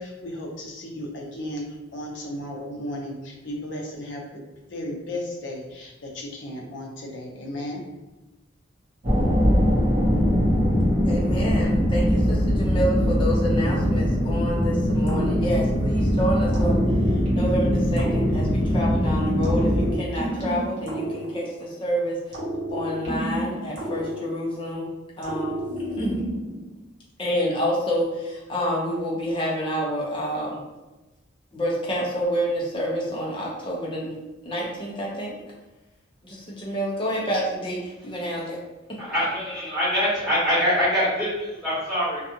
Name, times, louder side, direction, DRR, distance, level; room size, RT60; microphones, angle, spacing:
voice 1, 0.0-7.8, left 1 dB, 65° left, -1 dB, 0.6 m, -35 dB
sound 1, 9.0-19.9, equal, 30° right, 0.8 m, -21 dB
voice 2, 11.1-16.8 17.3-22.2 22.7-24.9 25.2-25.5 25.9-26.2 27.2-30.6 31.5-34.1 34.4-35.3 36.2-37.8 38.0-38.6 38.9-39.0, equal, 25° left, -4 dB, 0.6 m, -28 dB
sound 2, 15.1-16.1 16.5-18.9 19.4-21.8 22.3-24.7 25.2-26.7, right 1 dB, 65° right, 0.8 m, -31 dB
voice 3, 39.0-42.2, equal, ahead, -11 dB, 1.5 m, -24 dB
2.6 x 2.4 x 2.7 m, 1.1 s
head